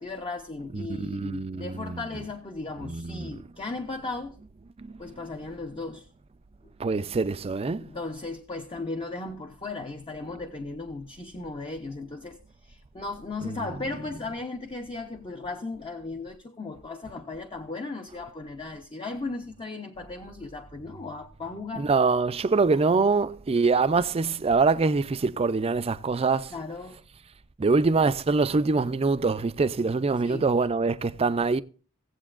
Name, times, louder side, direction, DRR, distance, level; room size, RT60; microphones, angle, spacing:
voice 1, 0.0-4.4 5.0-6.1 7.8-21.9 22.7-22.8 26.5-27.0 30.2-30.5, left 3 dB, 25° left, 0.6 m, -36 dB
voice 2, 0.7-2.0 2.8-3.3 4.8-4.9 6.8-7.9 21.7-26.5 27.6-31.6, right 4 dB, 30° right, 0.4 m, -24 dB
17.0 x 7.9 x 2.4 m
head